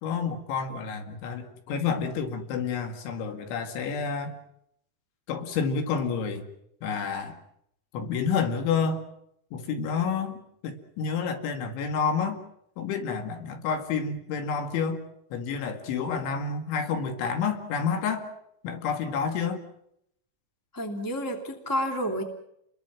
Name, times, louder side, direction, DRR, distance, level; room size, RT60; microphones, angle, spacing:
voice 1, 0.0-4.4 5.3-6.5 6.8-7.4 7.9-9.0 9.5-12.4 12.8-18.3 18.6-19.6, left 6 dB, 70° left, 6 dB, 4.3 m, -29 dB
voice 2, 20.7-22.2, equal, 25° left, 4 dB, 0.4 m, -30 dB
30.0 x 21.5 x 6.1 m, 0.76 s
omnidirectional pair, 5.7 m